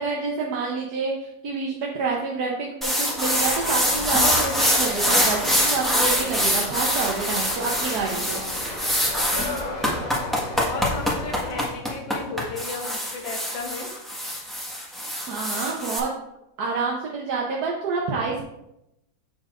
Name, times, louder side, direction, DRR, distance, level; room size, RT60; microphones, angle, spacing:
voice 1, 0.0-8.4 15.3-16.1 16.6-18.4, right 4 dB, 65° right, -2 dB, 1.3 m, -28 dB
sound 1, 2.8-16.0, equal, ahead, 1.1 m, -24 dB
sound 2, 3.2-11.7, left 2 dB, 30° left, 1.0 m, -35 dB
voice 2, 9.0-9.6 10.6-13.9, left 3 dB, 85° left, 2 dB, 1.9 m, -35 dB
7.3 x 7.1 x 2.5 m, 0.85 s
omnidirectional pair, 2.0 m